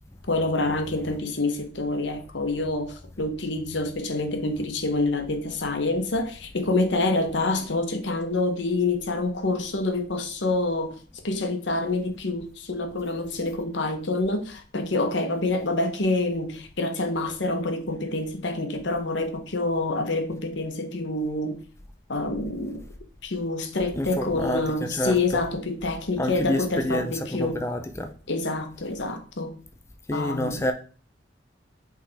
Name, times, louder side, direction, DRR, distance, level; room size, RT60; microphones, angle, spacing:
voice 1, 0.3-21.6 22.1-22.8 23.2-27.6 28.3-29.6 30.1-30.6, left 2 dB, 70° left, 0.9 m, -27 dB
voice 2, 24.0-25.4 26.2-28.1 30.1-30.7, left 1 dB, 15° left, 0.5 m, -28 dB
5.9 x 4.9 x 3.4 m
head